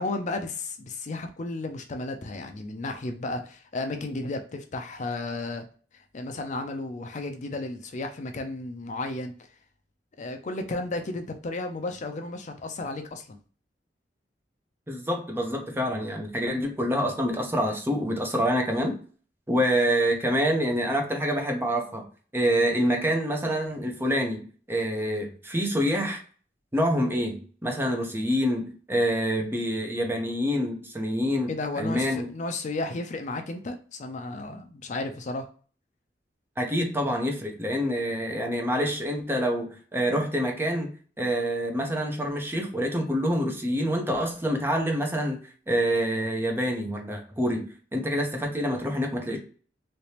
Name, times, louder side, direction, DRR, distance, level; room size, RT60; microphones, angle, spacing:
voice 1, 0.0-5.6 6.1-9.3 10.2-13.4 31.5-35.5, left 2 dB, 45° left, 6 dB, 0.4 m, -33 dB
voice 2, 14.9-19.0 19.5-22.0 22.3-26.2 26.7-32.3 36.6-40.9 41.2-45.4 45.7-47.7 47.9-49.4, equal, 15° right, 2 dB, 0.8 m, -26 dB
3.3 x 2.9 x 2.8 m, 0.41 s
head